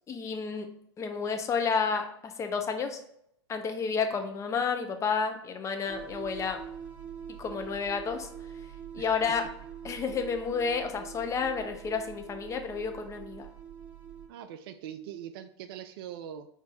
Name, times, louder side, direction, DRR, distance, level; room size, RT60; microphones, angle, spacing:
voice 1, 0.1-0.7 1.0-3.0 3.5-6.6 7.3-8.3 8.9-9.5 9.8-13.5, left 5 dB, 20° left, 5 dB, 0.6 m, -31 dB
sound 1, 5.9-14.3, right 8 dB, 10° right, 1.2 m, -44 dB
voice 2, 14.3-16.5, right 10 dB, 50° right, 10 dB, 0.4 m, -42 dB
5.2 x 2.6 x 3.4 m, 0.72 s
hypercardioid pair, 105°, 15 cm